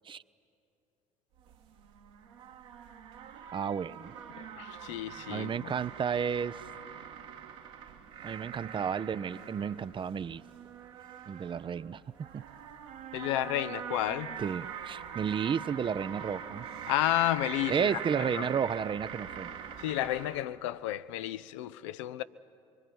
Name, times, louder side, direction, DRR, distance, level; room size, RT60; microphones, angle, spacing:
sound 1, 1.4-20.4, right 8 dB, 70° right, 1.8 m, -43 dB
voice 1, 3.5-4.1 5.3-6.6 8.2-10.4 11.3-12.0 12.3-12.4 14.4-16.7 17.7-19.5, right 7 dB, 30° right, 0.5 m, -32 dB
voice 2, 4.4-5.7 13.1-14.4 16.9-17.9 18.4-18.5 19.8-22.2, left 14 dB, 70° left, 0.6 m, -31 dB
25.5 x 24.0 x 9.4 m
figure-of-eight pair, 50°, 16 cm